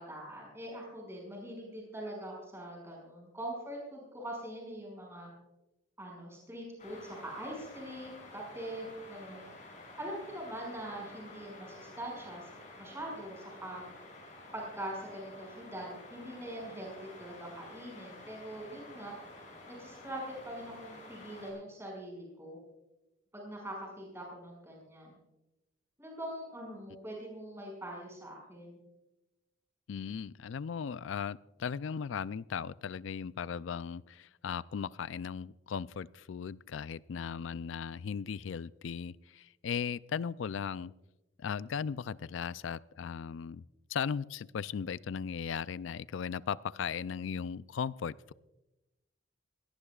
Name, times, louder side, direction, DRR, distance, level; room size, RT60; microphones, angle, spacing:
voice 1, 0.0-5.3 6.0-9.4 10.0-12.5 12.8-13.8 14.5-19.1 19.7-22.6 23.3-25.1 26.0-28.8, right 1 dB, 15° right, -1 dB, 5.7 m, -43 dB
sound 1, 6.8-21.5, left 2 dB, 40° left, 6.8 m, -51 dB
voice 2, 29.9-40.9 41.4-43.6 43.9-48.3, left 6 dB, 75° left, 18 dB, 0.4 m, -37 dB
22.0 x 18.0 x 2.4 m, 1.0 s
head